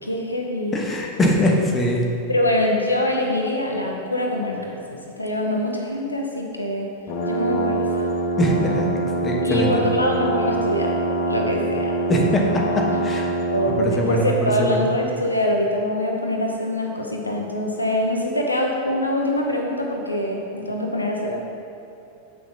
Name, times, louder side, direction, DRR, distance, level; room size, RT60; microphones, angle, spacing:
voice 1, 0.0-0.8 2.3-6.9 7.3-8.1 9.4-10.9 11.3-11.9 13.5-21.4, left 1 dB, 85° left, 0 dB, 0.7 m, -24 dB
voice 2, 0.7-2.1 8.4-8.9 9.2-9.8 12.1-13.3 13.8-14.3 14.6-14.8, equal, 20° left, -1 dB, 1.1 m, -21 dB
sound 1, 7.1-13.8, right 2 dB, 40° left, 1.0 m, -24 dB
7.5 x 5.9 x 4.2 m, 2.8 s
figure-of-eight pair, 90°, 0 cm